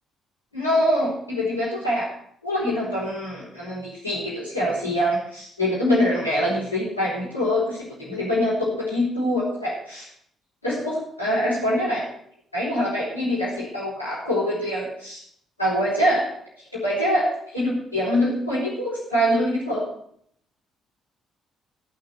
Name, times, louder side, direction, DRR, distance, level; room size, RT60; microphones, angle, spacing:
voice 1, 0.5-2.1 2.4-10.1 10.6-12.0 12.5-15.2 15.6-16.3 16.7-19.9, equal, 90° left, -9 dB, 4.2 m, -24 dB
16.5 x 5.9 x 8.1 m, 0.67 s
figure-of-eight pair, 45°, 0 cm